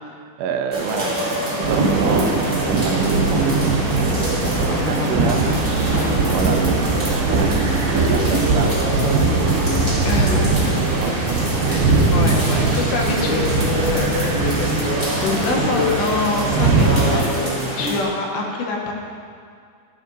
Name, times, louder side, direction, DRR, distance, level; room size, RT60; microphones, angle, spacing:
voice 1, 0.4-5.5 6.3-10.8 11.0-11.5 12.5-12.8, right 6 dB, 85° right, 4 dB, 3.2 m, -28 dB
sound 1, 0.7-18.0, equal, 40° right, 0.3 m, -26 dB
sound 2, 1.6-17.2, right 3 dB, 65° right, 3.1 m, -20 dB
voice 2, 4.5-5.6 5.9-6.1 10.0-11.2 11.7-18.9, left 3 dB, 75° left, -1 dB, 2.9 m, -27 dB
14.5 x 11.0 x 2.6 m, 2.3 s
omnidirectional pair, 5.5 m